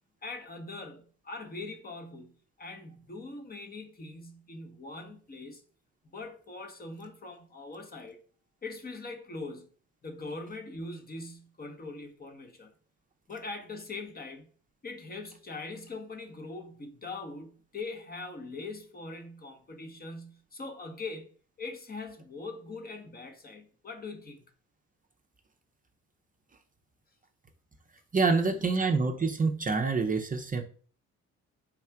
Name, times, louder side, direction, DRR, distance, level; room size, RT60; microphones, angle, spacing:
voice 1, 0.2-5.6 6.0-8.2 8.6-9.7 10.0-12.7 13.3-14.5 14.8-21.3 21.6-24.4, left 3 dB, 30° left, 0.8 m, -42 dB
voice 2, 28.1-30.6, right 4 dB, 30° right, 0.5 m, -26 dB
3.5 x 2.3 x 4.4 m
cardioid pair, 90°, 30 cm